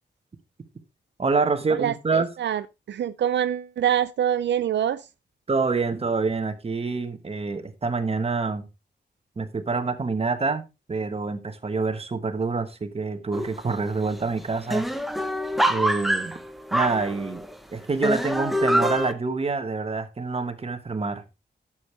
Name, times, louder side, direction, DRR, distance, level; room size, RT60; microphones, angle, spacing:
voice 1, 1.2-2.3 5.5-8.6 9.4-14.9 15.7-16.3 16.7-17.4 17.7-21.2, right 4 dB, 35° right, 1.2 m, -26 dB
voice 2, 1.8-2.6 2.9-5.0, right 10 dB, 80° right, 0.4 m, -25 dB
sound 1, 13.3-13.7 14.1-14.2 14.4-17.5 18.0-19.1, right 1 dB, ahead, 0.8 m, -25 dB
11.5 x 7.3 x 3.2 m
wide cardioid pair, 125°, 18 cm